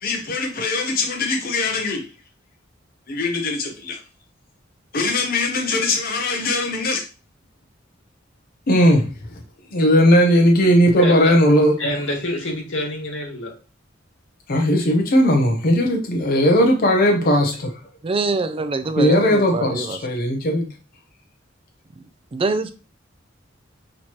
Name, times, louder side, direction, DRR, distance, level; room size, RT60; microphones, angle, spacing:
voice 1, 0.0-2.1 3.1-4.0 4.9-7.0 8.7-9.3 9.7-11.8 14.5-17.8 19.0-20.7, left 1 dB, 50° left, 0.7 m, -18 dB
voice 2, 11.0-11.3 11.8-13.5, left 1 dB, 80° left, 1.8 m, -26 dB
voice 3, 18.0-20.0 22.3-22.7, right 3 dB, 30° right, 0.4 m, -24 dB
6.3 x 2.9 x 2.9 m
head